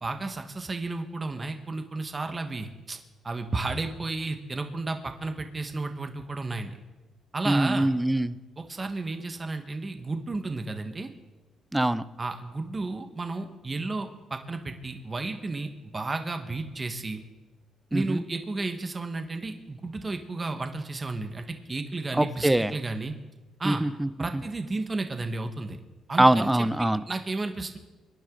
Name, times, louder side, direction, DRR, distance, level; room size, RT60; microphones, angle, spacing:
voice 1, 0.0-6.8 7.3-7.9 8.6-11.1 12.2-17.2 17.9-23.1 23.6-23.8 24.2-25.8 26.1-26.7 27.1-27.8, right 3 dB, 30° right, 6 dB, 1.5 m, -33 dB
voice 2, 7.5-8.3 11.7-12.0 17.9-18.2 22.2-22.7 23.6-24.1 26.2-27.0, right 1 dB, 10° right, 15 dB, 0.6 m, -23 dB
24.5 x 10.5 x 3.9 m, 1.1 s
cardioid pair, 90°, 0 cm